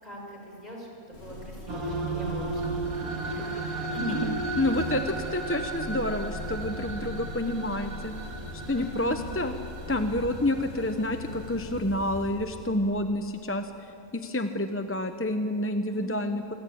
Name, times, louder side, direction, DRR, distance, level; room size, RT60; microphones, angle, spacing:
voice 1, 0.0-4.2 4.6-4.7 8.8-9.3 15.9-16.3, equal, 30° left, -1 dB, 6.2 m, -42 dB
sound 1, 1.1-13.0, left 1 dB, 45° left, 4.8 m, -41 dB
sound 2, 1.7-11.8, right 3 dB, 90° right, 2.5 m, -35 dB
voice 2, 4.0-8.1 8.5-9.5 9.9-13.7 14.1-16.5, left 1 dB, 15° left, 7 dB, 0.6 m, -29 dB
26.5 x 23.0 x 8.6 m, 2.9 s
omnidirectional pair, 1.5 m